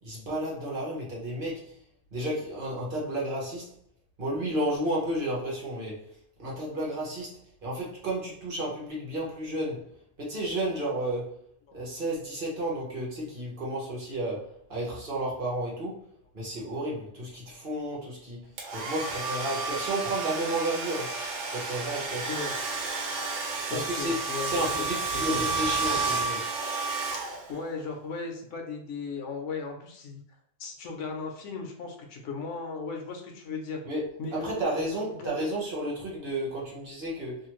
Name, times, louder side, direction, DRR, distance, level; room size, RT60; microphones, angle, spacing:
voice 1, 0.0-1.8 2.1-3.7 4.2-6.1 6.4-9.9 10.2-11.3 11.7-16.0 16.3-21.1 21.5-22.3 23.7-24.1 24.4-26.5 33.8-37.5, right 1 dB, 50° right, -4 dB, 1.1 m, -32 dB
Domestic sounds home sounds, 18.6-27.7, right 3 dB, 80° right, 1.0 m, -31 dB
voice 2, 23.7-25.4 27.5-30.2 30.6-33.8 34.2-34.9 35.2-35.4, left 4 dB, 85° left, 2 dB, 1.0 m, -37 dB
2.8 x 2.4 x 3.0 m, 0.66 s
omnidirectional pair, 1.2 m